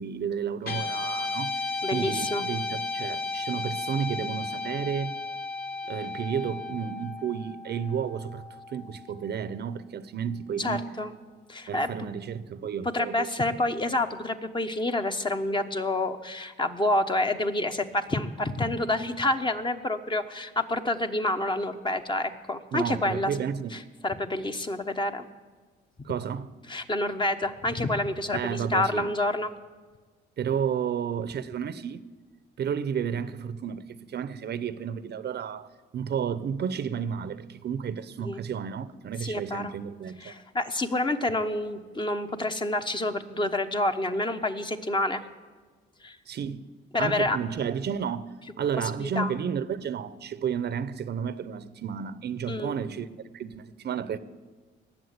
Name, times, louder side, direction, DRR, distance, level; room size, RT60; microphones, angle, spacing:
voice 1, 0.0-1.5 1.9-5.2 5.8-8.4 8.7-10.9 11.7-13.3 22.7-23.7 26.0-26.5 28.3-29.1 30.4-32.0 32.6-35.7 35.9-40.4 46.3-46.7 47.0-48.3 48.6-53.1 53.3-54.2, right 7 dB, 55° right, 0.8 m, -32 dB
Guitar, 0.6-9.1, left 3 dB, 50° left, 3.2 m, -34 dB
voice 2, 1.8-2.5 10.6-11.1 11.5-12.1 12.9-23.3 23.7-25.2 26.7-29.5 38.2-38.4 39.2-39.7 40.2-45.2 46.0-46.2 46.9-47.4 49.0-49.3 52.5-52.8, left 2 dB, 25° left, 1.1 m, -28 dB
18.5 x 7.5 x 9.6 m
cardioid pair, 90°, 20 cm